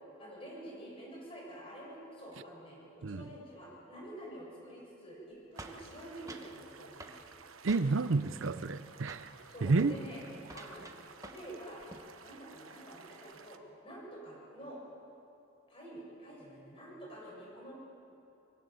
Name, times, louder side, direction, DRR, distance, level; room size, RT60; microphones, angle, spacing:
voice 1, 0.2-7.2 9.5-10.2 10.5-10.9 11.2-11.8 12.2-14.8 15.7-17.7, right 1 dB, 25° left, -4 dB, 7.5 m, -48 dB
sound 1, 5.5-13.6, right 6 dB, 85° right, 1.1 m, -54 dB
sound 2, 5.6-6.5 7.0-7.2 7.7-8.1 8.4-8.8 9.1-9.3 9.7-10.0 10.4-11.5 11.8-12.1, right 2 dB, 15° right, 1.2 m, -50 dB
voice 2, 7.6-9.3 9.6-9.9, right 3 dB, 70° right, 13 dB, 0.6 m, -30 dB
24.0 x 16.0 x 8.8 m, 2.9 s
head